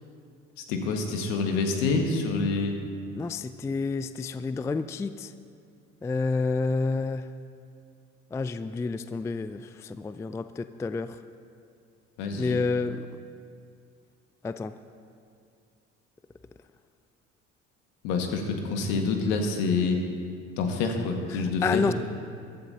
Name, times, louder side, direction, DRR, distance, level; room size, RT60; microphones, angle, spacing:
voice 1, 0.7-2.8 12.2-12.6 18.0-20.0 20.6-21.8, left 4 dB, 65° left, 4 dB, 1.8 m, -27 dB
voice 2, 3.2-5.3 6.0-7.3 8.3-11.2 12.4-13.1 14.4-14.7 18.9-19.0 21.3-21.9, left 4 dB, 10° left, 12 dB, 0.3 m, -29 dB
22.5 x 12.5 x 2.8 m, 2.3 s
hypercardioid pair, 60°, 37 cm